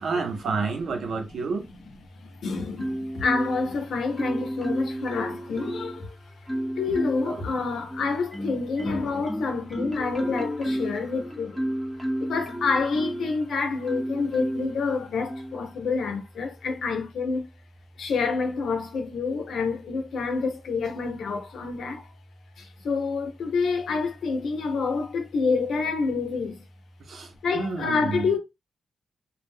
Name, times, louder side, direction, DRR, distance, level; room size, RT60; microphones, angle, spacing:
voice 1, 0.0-1.7 7.3-7.4 27.1-28.3, right 4 dB, 75° right, 0.7 m, -29 dB
voice 2, 2.2-6.1 6.8-11.6 12.2-17.5 18.0-22.1 22.6-26.6 27.4-28.4, left 4 dB, 80° left, 0.7 m, -28 dB
Marimba xylophone, 2.8-3.8 4.2-6.0 6.5-7.4 7.9-13.3 13.9-14.7 15.3-15.5, equal, ahead, 0.8 m, -31 dB
2.3 x 2.1 x 3.4 m
cardioid pair, 85°, 0 cm